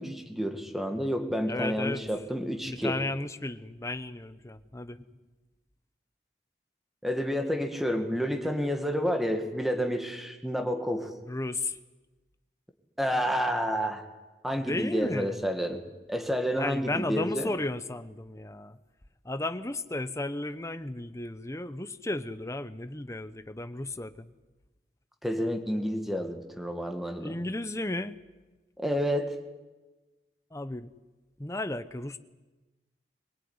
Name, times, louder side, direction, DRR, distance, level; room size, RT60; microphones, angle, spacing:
voice 1, 0.0-3.0 7.0-11.1 13.0-14.0 14.4-17.5 25.2-27.4 28.8-29.4, equal, ahead, 5 dB, 2.0 m, -30 dB
voice 2, 1.5-2.0 2.6-5.0 11.3-11.8 14.6-15.4 16.6-18.8 19.2-24.3 27.2-28.2 30.5-30.9 31.4-32.2, left 2 dB, 15° left, 12 dB, 0.8 m, -34 dB
22.5 x 20.0 x 9.6 m, 1.2 s
head